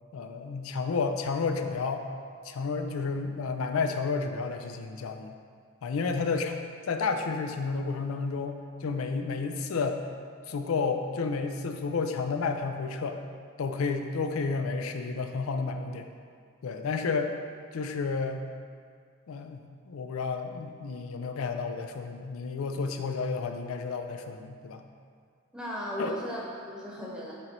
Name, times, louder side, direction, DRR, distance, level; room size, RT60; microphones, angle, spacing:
voice 1, 0.1-2.0 2.4-5.4 5.8-6.6 6.9-10.0 10.5-13.2 13.6-16.1 16.6-17.3 17.7-18.4 19.3-24.8 26.0-26.1, left 4 dB, 90° left, 6 dB, 0.4 m, -31 dB
voice 2, 25.5-27.3, equal, 5° right, -5 dB, 0.9 m, -36 dB
6.8 x 3.0 x 5.2 m, 2.1 s
head